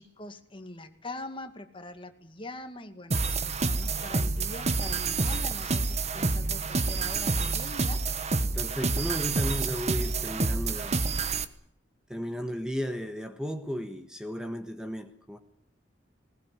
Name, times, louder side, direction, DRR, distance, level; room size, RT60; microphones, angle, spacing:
voice 1, 0.0-8.0, left 2 dB, 30° left, 2.1 m, -43 dB
sound 1, 3.1-11.4, right 3 dB, 35° right, 1.3 m, -28 dB
voice 2, 8.5-11.0 12.1-15.4, equal, 5° right, 1.4 m, -34 dB
20.5 x 19.5 x 9.7 m
head